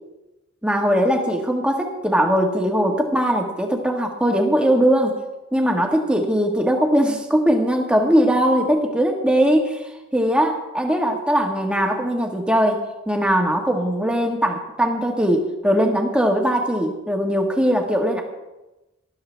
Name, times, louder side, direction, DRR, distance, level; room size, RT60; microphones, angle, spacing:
voice 1, 0.6-5.2 5.5-18.2, equal, 5° right, 1 dB, 1.5 m, -20 dB
19.0 x 12.5 x 3.4 m, 1.0 s
head